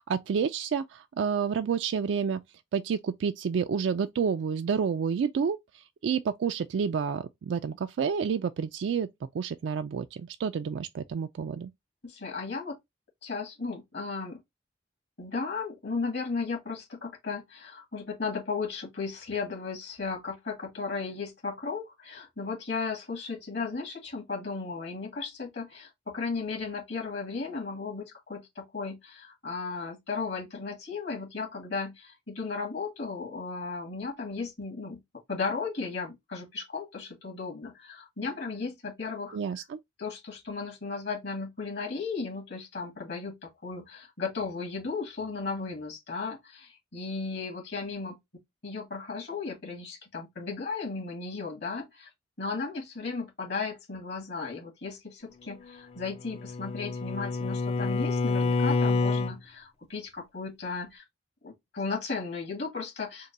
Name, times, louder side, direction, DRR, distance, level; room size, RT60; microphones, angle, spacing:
voice 1, 0.0-2.4 2.7-9.1 9.3-11.7 39.3-39.8, right 6 dB, 80° right, 0.3 m, -29 dB
voice 2, 12.0-12.8 13.2-14.4 15.2-35.0 35.3-39.4 40.0-48.2 48.6-52.1 52.4-61.0 61.4-63.3, left 4 dB, 65° left, 1.8 m, -35 dB
Bowed string instrument, 56.0-59.4, left 3 dB, 35° left, 0.4 m, -28 dB
3.7 x 2.2 x 4.0 m
head